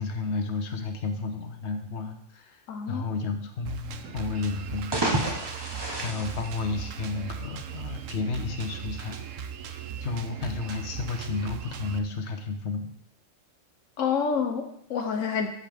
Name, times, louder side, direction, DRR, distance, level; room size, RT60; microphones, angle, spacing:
voice 1, 0.0-5.1 6.0-9.3 9.7-12.9, left 4 dB, 65° left, 6 dB, 1.2 m, -32 dB
voice 2, 2.7-3.0 14.0-15.5, left 6 dB, 85° left, 4 dB, 1.2 m, -28 dB
Drum kit, 3.6-12.0, right 8 dB, 85° right, 1.1 m, -38 dB
sound 1, 4.7-7.3, right 1 dB, 20° right, 1.0 m, -30 dB
13.5 x 5.5 x 3.5 m, 0.71 s
omnidirectional pair, 1.3 m